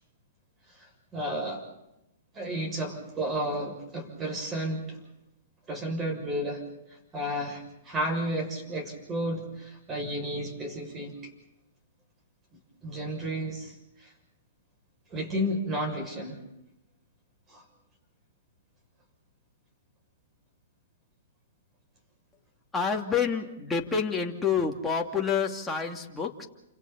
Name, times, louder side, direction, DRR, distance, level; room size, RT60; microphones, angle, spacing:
voice 1, 0.8-1.6 2.3-5.0 5.7-6.6 7.1-11.1 12.8-14.1 15.1-16.4 17.5-17.6, equal, 20° right, 4 dB, 6.8 m, -32 dB
voice 2, 22.7-26.5, left 6 dB, 10° left, 1 dB, 2.6 m, -28 dB
29.0 x 27.0 x 4.3 m, 0.88 s
hypercardioid pair, 130°, 0 cm